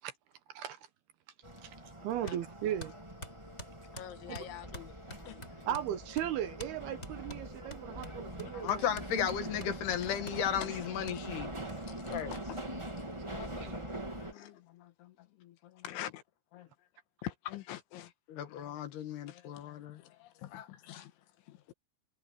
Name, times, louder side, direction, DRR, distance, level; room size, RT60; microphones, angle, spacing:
sound 1, 1.4-14.3, right 1 dB, 10° right, 1.4 m, -43 dB
voice 1, 2.0-2.9 4.3-4.4 5.7-8.9 13.6-13.7, right 11 dB, 75° right, 2.6 m, -37 dB
sound 2, 2.3-2.4 2.8-5.9 6.2-6.3 6.6-6.8 7.0-10.5 11.1-11.2 11.7-11.8 12.2-12.3 12.6-12.7 12.9-13.6, left 1 dB, 15° left, 7.3 m, -48 dB
voice 2, 3.9-5.0 5.3-5.4 10.6-10.7 11.8-12.6 13.3-13.8 14.3-14.6 15.8-16.2 17.2-18.1 18.5-18.6 19.3-20.1 20.4-21.1 21.5-21.7, left 13 dB, 85° left, 3.9 m, -45 dB
voice 3, 8.4-11.5 12.1-12.3 13.3-13.8 14.1-15.1 15.4-15.5 16.6-16.7 18.3-20.0 20.5-20.7, left 9 dB, 65° left, 3.4 m, -36 dB
omnidirectional pair, 5.2 m